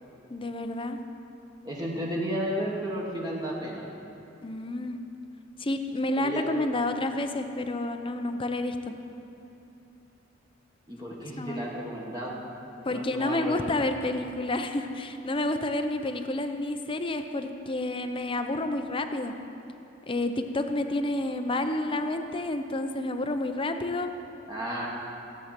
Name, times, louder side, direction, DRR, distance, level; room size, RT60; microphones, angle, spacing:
voice 1, 0.3-1.0 4.4-5.0 5.6-8.8 11.4-11.6 12.8-19.3 20.1-24.1, left 2 dB, 30° left, 7 dB, 0.6 m, -29 dB
voice 2, 1.6-3.8 6.2-6.4 10.9-12.4 12.9-13.7 24.5-24.9, equal, 20° right, -4 dB, 1.5 m, -33 dB
15.0 x 8.3 x 5.9 m, 2.9 s
head